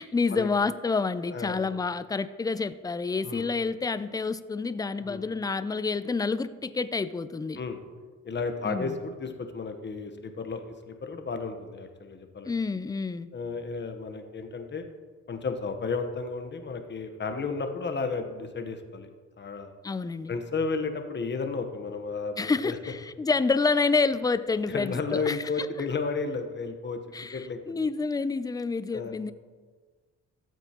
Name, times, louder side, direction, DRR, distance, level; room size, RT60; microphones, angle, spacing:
voice 1, 0.0-7.6 8.6-9.0 12.5-13.3 19.8-20.4 22.4-25.7 27.1-29.3, left 4 dB, 15° left, 14 dB, 0.4 m, -28 dB
voice 2, 1.3-1.7 3.2-3.5 5.1-5.3 7.6-7.8 8.2-12.5 13.3-14.9 15.3-19.1 19.4-19.7 20.3-22.8 24.7-27.0 27.3-27.8 28.9-29.1, left 4 dB, 35° left, 6 dB, 1.1 m, -33 dB
14.0 x 7.8 x 3.0 m, 1.4 s
cardioid pair, 90°, 30 cm